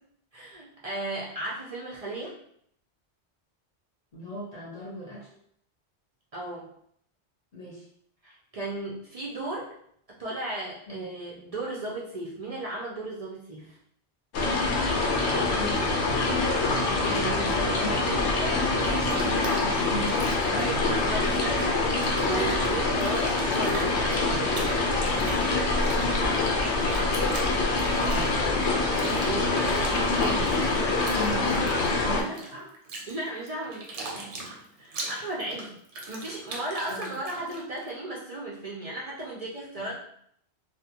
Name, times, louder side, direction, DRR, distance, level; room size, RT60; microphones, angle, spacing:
voice 1, 0.3-2.3 6.3-6.7 8.2-9.7 10.1-13.8 16.8-19.3 19.9-20.1 20.5-21.8 22.2-25.5 29.0-30.1 32.2-32.4 33.1-34.3 34.8-35.7 36.1-40.0, right 2 dB, 50° right, -5 dB, 0.4 m, -35 dB
voice 2, 4.1-5.3 7.5-7.8 10.9-11.1 15.3-16.4 17.1-18.0 19.2-21.3 24.2-24.5 28.0-28.5 29.9-31.6 32.0-32.7 36.9-37.1 39.8-40.0, left 1 dB, 40° left, -5 dB, 0.8 m, -38 dB
sound 1, 14.3-32.2, left 3 dB, 80° left, 0.9 m, -25 dB
Bathtub (filling or washing), 18.6-21.6 21.9-37.9, right 2 dB, 90° right, 0.9 m, -41 dB
2.4 x 2.2 x 2.8 m, 0.67 s
omnidirectional pair, 1.2 m